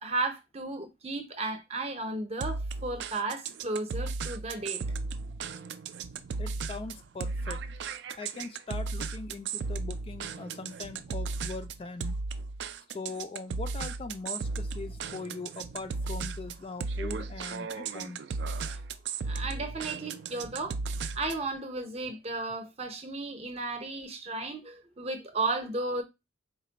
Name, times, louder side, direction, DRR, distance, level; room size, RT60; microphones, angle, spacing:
voice 1, 0.0-4.8 19.3-20.8 21.2-26.0, right 2 dB, 35° right, 0.7 m, -34 dB
sound 1, 2.4-21.5, right 4 dB, 65° right, 0.3 m, -35 dB
voice 2, 6.4-7.6 8.2-12.2 12.9-18.2, left 3 dB, 30° left, 0.3 m, -41 dB
4.1 x 2.2 x 3.9 m
head